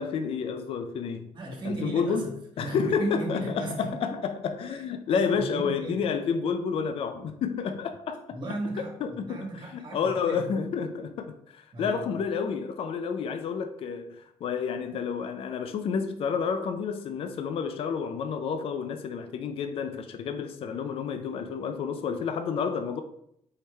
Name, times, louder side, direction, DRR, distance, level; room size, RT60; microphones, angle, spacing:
voice 1, 0.0-1.3 1.7-8.4 9.0-9.5 9.9-23.0, left 6 dB, 50° left, 0.4 m, -30 dB
voice 2, 1.3-2.3 2.6-3.9 4.7-6.1 8.3-10.7 11.7-12.2, right 2 dB, 40° right, 1.5 m, -35 dB
4.6 x 3.1 x 3.3 m
cardioid pair, 110°, 12 cm